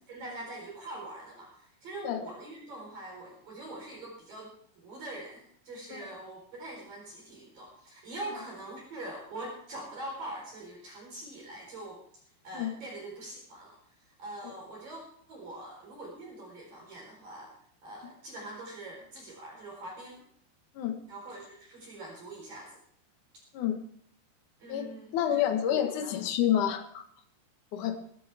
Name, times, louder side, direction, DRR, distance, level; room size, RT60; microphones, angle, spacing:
voice 1, 0.1-4.5 4.8-12.0 12.4-13.8 14.1-15.0 15.3-17.5 17.8-20.2 21.1-22.8 24.6-25.4 25.7-26.2, right 2 dB, 45° right, -1 dB, 5.6 m, -43 dB
voice 2, 24.7-27.0 27.7-28.0, left 10 dB, 65° left, 5 dB, 2.1 m, -29 dB
21.0 x 13.0 x 3.6 m, 0.62 s
omnidirectional pair, 5.8 m